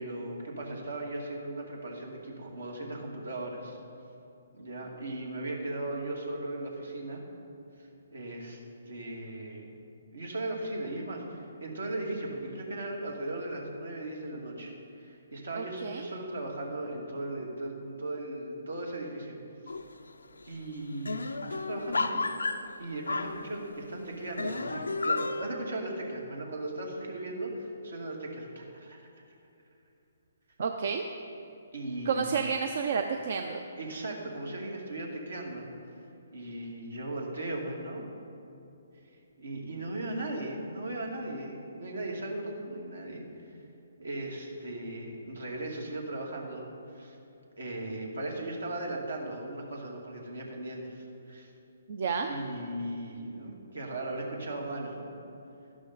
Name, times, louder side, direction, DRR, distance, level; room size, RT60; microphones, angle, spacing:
voice 1, 0.0-3.8 4.5-7.2 7.8-8.6 8.8-9.7 10.1-19.4 19.6-19.7 20.5-22.2 22.8-29.0 31.7-32.3 33.8-36.0 36.3-38.1 39.1-43.6 44.0-47.2 47.6-51.5 52.3-55.1, right 1 dB, 80° right, -1 dB, 2.4 m, -37 dB
voice 2, 15.5-16.1 30.6-31.0 32.1-33.6 51.9-52.3, right 6 dB, 55° right, 5 dB, 0.6 m, -30 dB
sound 1, 19.7-20.1 20.4-20.5 20.7-23.9 24.4-25.5, left 3 dB, 85° left, 0.5 m, -32 dB
12.5 x 11.0 x 4.0 m, 2.8 s
figure-of-eight pair, 135°, 0 cm